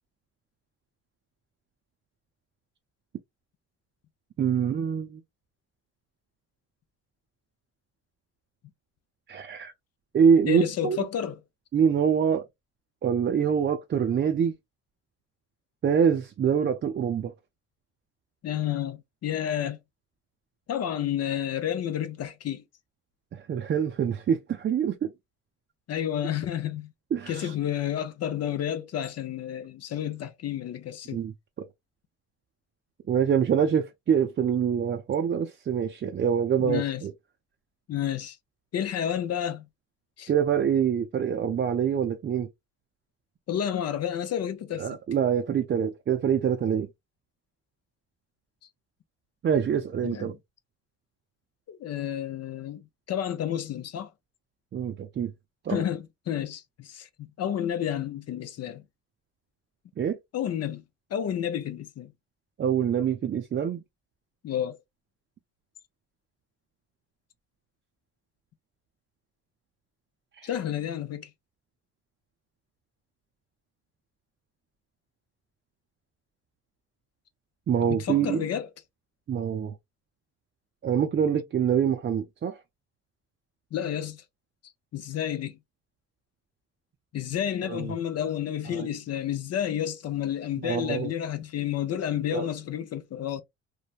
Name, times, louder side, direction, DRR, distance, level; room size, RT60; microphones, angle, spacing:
voice 1, 4.4-5.2 9.3-9.7 10.1-11.0 11.7-12.4 13.0-14.5 15.8-17.3 23.3-25.1 27.1-27.5 31.1-31.3 33.1-37.1 40.3-42.5 44.8-46.9 49.4-50.3 54.7-55.3 55.6-55.8 60.0-60.2 62.6-63.8 70.3-70.5 77.7-78.5 79.3-79.7 80.8-82.6 87.6-87.9 88.7-88.9 90.6-91.1 92.3-92.5, right 7 dB, 35° right, 0.5 m, -25 dB
voice 2, 10.5-11.4 18.4-19.8 20.7-22.6 25.9-26.9 27.3-31.2 36.6-37.0 37.9-38.4 38.7-39.6 40.2-40.3 43.5-45.0 50.0-50.3 51.7-52.8 53.1-54.1 55.7-57.1 57.4-58.8 60.3-60.8 61.1-62.1 64.4-64.8 70.4-71.3 77.9-78.7 83.7-84.2 84.9-85.6 87.1-93.4, left 10 dB, 55° left, 0.6 m, -30 dB
3.1 x 2.1 x 2.3 m
cardioid pair, 90°, 30 cm